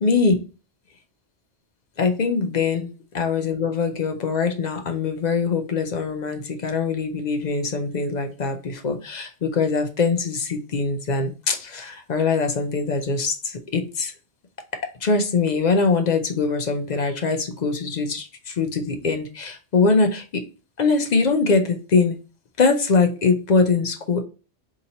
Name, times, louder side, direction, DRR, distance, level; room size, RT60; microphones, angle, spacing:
voice 1, 0.0-0.4 2.0-14.1 15.0-20.5 20.8-22.2 22.6-24.2, left 4 dB, 50° left, 5 dB, 0.6 m, -22 dB
4.1 x 2.9 x 2.7 m, 0.34 s
omnidirectional pair, 1.1 m